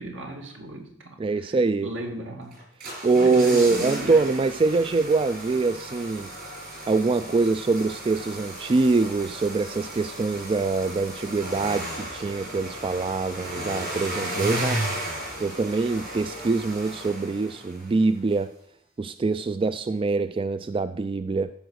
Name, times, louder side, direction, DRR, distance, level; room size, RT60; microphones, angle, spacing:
voice 1, 0.0-2.6 3.1-4.2, right 1 dB, 75° right, 1 dB, 2.3 m, -35 dB
voice 2, 1.2-1.9 3.0-6.3 6.9-14.8 15.4-18.5 19.0-21.5, right 3 dB, 25° right, 12 dB, 0.3 m, -24 dB
sound 1, 2.5-18.0 18.3-18.4, right 1 dB, 50° right, 5.8 m, -34 dB
13.5 x 5.1 x 6.4 m, 0.68 s
head